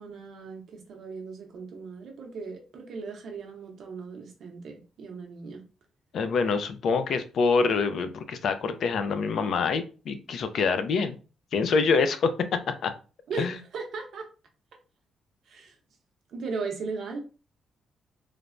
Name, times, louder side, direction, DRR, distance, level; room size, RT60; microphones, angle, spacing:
voice 1, 0.0-5.6 13.3-13.5 13.7-14.3 15.5-15.7 16.3-17.2, right 4 dB, 60° right, 0.7 m, -37 dB
voice 2, 6.1-11.2 11.5-12.3 12.8-12.9 13.4-13.5, left 4 dB, 55° left, 0.3 m, -25 dB
3.1 x 2.0 x 2.4 m
cardioid pair, 165°, 0 cm